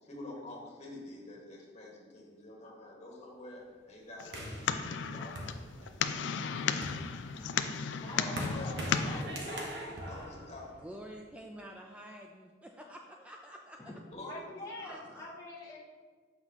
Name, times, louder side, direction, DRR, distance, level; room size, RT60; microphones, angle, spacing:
voice 1, 0.0-5.5 6.0-6.6 8.1-9.7 10.1-10.7 14.1-14.6, left 1 dB, 40° left, -3 dB, 1.6 m, -47 dB
sound 1, 4.2-9.2, left 6 dB, 85° left, 0.4 m, -34 dB
sound 2, 4.3-6.1 6.6-11.2, right 1 dB, 65° right, 1.1 m, -41 dB
voice 2, 8.0-9.4 13.8-15.8, left 2 dB, 20° left, -6 dB, 0.9 m, -45 dB
voice 3, 10.7-13.9 14.7-15.3, equal, 5° right, 1 dB, 0.4 m, -49 dB
7.5 x 5.8 x 2.9 m, 1.5 s
head